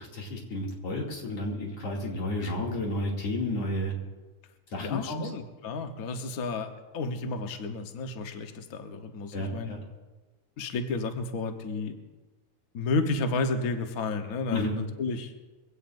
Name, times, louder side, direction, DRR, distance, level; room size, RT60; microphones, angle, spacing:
voice 1, 0.0-3.9 4.7-5.2 9.3-9.8 14.5-14.8, left 1 dB, 55° left, -2 dB, 3.6 m, -31 dB
voice 2, 4.8-9.7 10.6-11.9 12.7-15.3, left 3 dB, 80° left, 5 dB, 0.7 m, -32 dB
23.5 x 16.5 x 2.6 m, 1.2 s
omnidirectional pair, 3.3 m